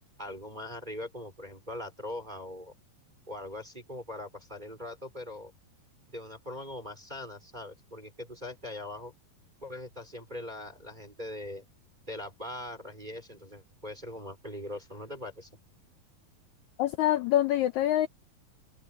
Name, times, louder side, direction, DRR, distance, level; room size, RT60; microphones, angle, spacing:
voice 1, 0.2-2.7 3.3-5.5 6.1-9.1 9.6-11.6 12.1-15.5, left 1 dB, 10° right, 4.1 m, -41 dB
voice 2, 16.8-18.1, left 12 dB, 80° left, 1.7 m, -25 dB
open air
omnidirectional pair, 4.1 m